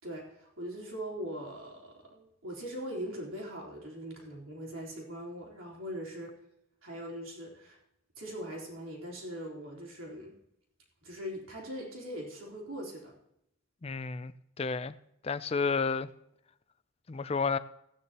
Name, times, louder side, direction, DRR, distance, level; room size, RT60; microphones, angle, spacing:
voice 1, 0.0-6.4 6.8-7.8 8.2-10.3 11.0-13.1, equal, 75° right, 3.8 m, -41 dB
voice 2, 13.8-14.3 14.6-14.9 15.2-16.1 17.1-17.6, left 4 dB, 30° left, 0.4 m, -31 dB
17.0 x 9.7 x 2.9 m
head